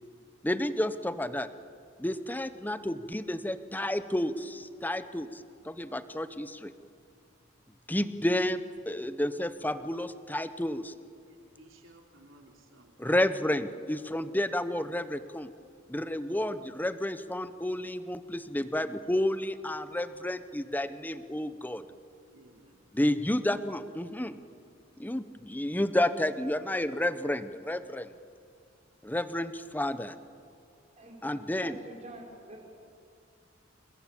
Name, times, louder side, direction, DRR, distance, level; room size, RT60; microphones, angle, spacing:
voice 1, 0.4-1.5 2.0-6.7 7.9-8.6 8.9-10.9 13.0-15.5 15.9-21.8 22.9-24.4 25.0-28.1 29.0-30.1 31.2-31.8, left 1 dB, 10° left, 12 dB, 0.9 m, -31 dB
voice 2, 11.2-13.4 22.3-22.8, right 2 dB, 80° right, 3 dB, 3.5 m, -57 dB
voice 3, 31.0-32.6, right 1 dB, 35° right, 0 dB, 5.0 m, -47 dB
28.5 x 21.0 x 8.4 m, 2.3 s
head